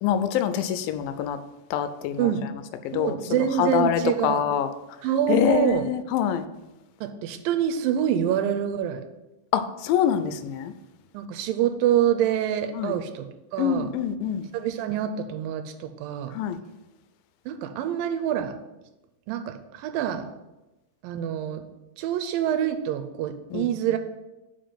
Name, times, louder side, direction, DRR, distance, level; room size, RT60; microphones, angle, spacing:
voice 1, 0.0-1.4 1.7-2.3 2.9-4.7 5.3-6.5 9.5-10.7 12.8-13.0 13.6-14.5 16.3-16.6 23.5-23.7, left 9 dB, 85° left, 11 dB, 2.3 m, -25 dB
voice 2, 2.9-4.5 5.0-5.9 7.0-9.0 11.1-13.9 14.5-16.4 17.5-18.6 19.3-20.3 21.0-21.6 22.0-24.0, right 10 dB, 85° right, 7 dB, 2.3 m, -26 dB
5.3 x 5.1 x 5.7 m, 1.0 s
omnidirectional pair, 4.0 m